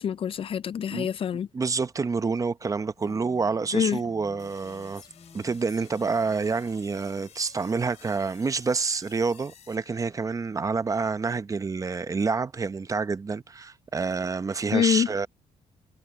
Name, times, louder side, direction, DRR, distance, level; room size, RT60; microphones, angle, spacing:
voice 1, 0.0-1.5 3.7-4.0 14.7-15.1, left 8 dB, 50° left, 0.4 m, -25 dB
voice 2, 1.5-5.0 5.3-15.3, right 4 dB, 25° right, 0.8 m, -28 dB
Female speech woman speaking, 3.0-7.1, left 4 dB, 30° left, 4.2 m, -52 dB
sound 1, 4.4-10.6, left 9 dB, 65° left, 3.1 m, -54 dB
cardioid pair, 105°, 12 cm